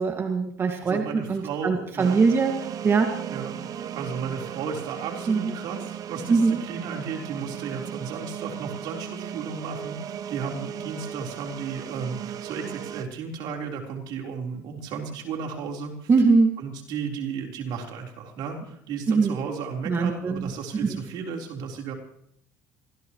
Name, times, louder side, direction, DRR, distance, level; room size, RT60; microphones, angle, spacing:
voice 1, 0.0-2.5 2.8-3.1 5.3-5.5 6.3-6.6 16.1-16.6 19.1-19.4 19.9-21.0, right 4 dB, 30° right, 3 dB, 2.0 m, -22 dB
voice 2, 0.8-2.2 3.3-3.6 3.9-16.1 16.6-21.9, right 6 dB, 70° right, 1 dB, 4.0 m, -34 dB
sound 1, 2.0-13.0, right 9 dB, 50° right, 0.9 m, -36 dB
27.0 x 16.5 x 3.1 m, 0.67 s
cardioid pair, 105°, 8 cm